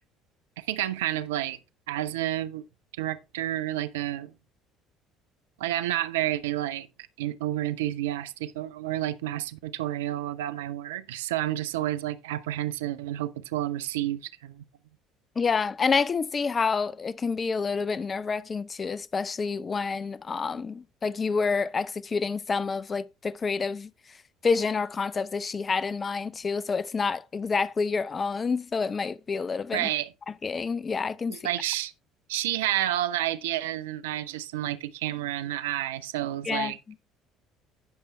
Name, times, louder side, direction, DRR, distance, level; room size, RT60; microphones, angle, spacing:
voice 1, 0.6-1.6 1.9-2.6 3.0-4.3 5.6-6.9 7.2-14.6 29.7-30.1 31.3-31.9 32.3-36.8, right 13 dB, 70° right, 0.5 m, -30 dB
voice 2, 15.4-23.9 24.4-29.9 30.3-31.4 36.4-36.7, left 5 dB, 30° left, 0.6 m, -28 dB
17.5 x 6.8 x 2.2 m
figure-of-eight pair, 55°, 0 cm